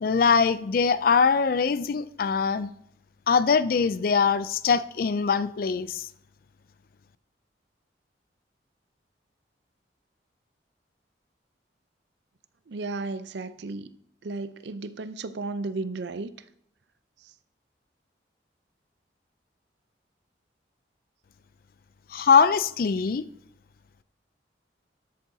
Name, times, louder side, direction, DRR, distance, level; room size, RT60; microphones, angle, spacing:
voice 1, 0.0-2.7 3.3-6.1 22.1-23.2, left 5 dB, 50° left, 0.4 m, -22 dB
voice 2, 12.7-13.9 14.2-16.3 17.2-17.3, right 3 dB, 70° right, 0.5 m, -34 dB
13.0 x 8.5 x 2.7 m
head